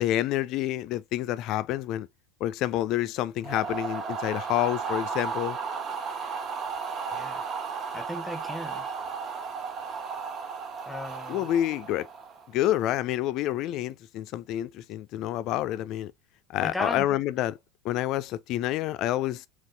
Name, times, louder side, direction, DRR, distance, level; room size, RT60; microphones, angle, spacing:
voice 1, 0.0-2.1 2.4-5.6 11.3-12.1 12.5-16.1 16.5-17.6 17.8-19.5, left 13 dB, 50° left, 0.4 m, -28 dB
sound 1, 3.4-12.5, right 5 dB, 35° right, 1.1 m, -34 dB
voice 2, 7.1-7.5 7.9-8.9 10.9-11.4 16.6-17.1, left 1 dB, 10° left, 0.9 m, -36 dB
4.1 x 3.0 x 3.3 m
figure-of-eight pair, 80°, 0 cm